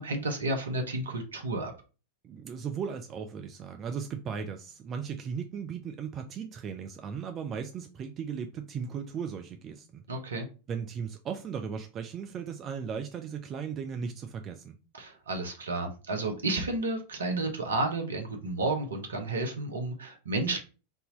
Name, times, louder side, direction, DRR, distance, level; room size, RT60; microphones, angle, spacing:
voice 1, 0.0-1.7 10.1-10.5 14.9-20.6, right 2 dB, 70° right, 1.0 m, -31 dB
voice 2, 2.2-10.0 10.7-14.8, right 6 dB, 30° right, 0.5 m, -37 dB
3.6 x 2.8 x 4.0 m
figure-of-eight pair, 90°, 0 cm